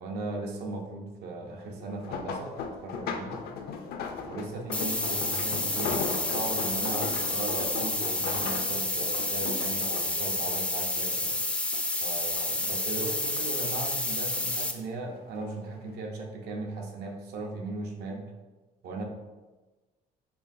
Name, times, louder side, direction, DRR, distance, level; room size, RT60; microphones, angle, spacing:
voice 1, 0.0-3.4 4.2-11.4 12.0-18.2 18.8-19.0, right 3 dB, 80° right, 2 dB, 0.7 m, -37 dB
goats coming up to wooden platform, 1.8-11.4 11.7-12.7 13.1-14.4 15.2-15.5 15.9-16.0, left 5 dB, 65° left, 0.5 m, -37 dB
sound 1, 4.7-14.7, left 2 dB, 5° left, 0.3 m, -30 dB
4.6 x 3.1 x 2.6 m, 1.2 s
cardioid pair, 110°, 17 cm